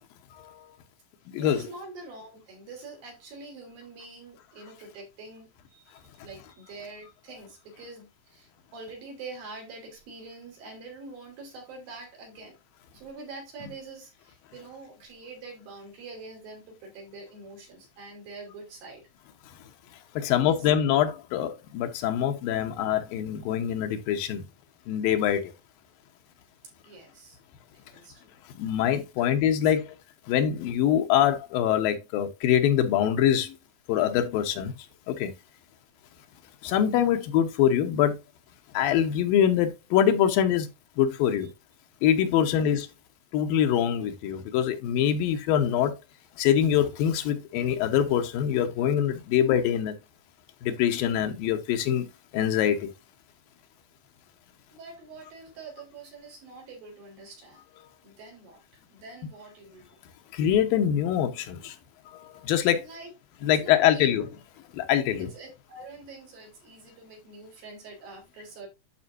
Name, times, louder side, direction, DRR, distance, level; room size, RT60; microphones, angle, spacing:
voice 1, 1.4-12.6 12.9-19.0 20.3-20.7 26.8-27.4 27.7-28.4 29.2-29.3 29.6-29.7 42.3-42.6 54.7-57.6 58.0-58.6 58.9-60.0 62.7-63.1 63.4-64.1 65.2-68.7, right 3 dB, 85° right, 5.4 m, -45 dB
voice 2, 20.2-24.5 24.9-25.5 28.5-30.0 30.3-33.6 33.9-34.7 35.1-35.3 36.6-38.2 38.7-40.7 41.0-41.5 42.0-42.9 43.3-45.9 46.4-50.0 50.6-52.1 52.3-52.9 60.3-61.8 62.2-62.9 63.4-64.3 64.7-65.3, left 10 dB, 90° left, 2.8 m, -24 dB
12.0 x 4.4 x 2.6 m
omnidirectional pair, 4.0 m